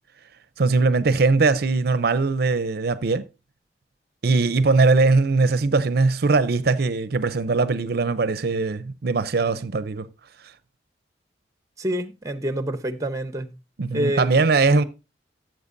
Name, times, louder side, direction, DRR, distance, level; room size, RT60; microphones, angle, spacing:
voice 1, 0.6-3.2 4.2-10.1 13.8-14.8, right 3 dB, 60° right, 0.5 m, -20 dB
voice 2, 11.8-13.5 13.9-14.4 14.7-14.8, right 1 dB, 20° right, 0.8 m, -27 dB
13.5 x 7.7 x 2.6 m
head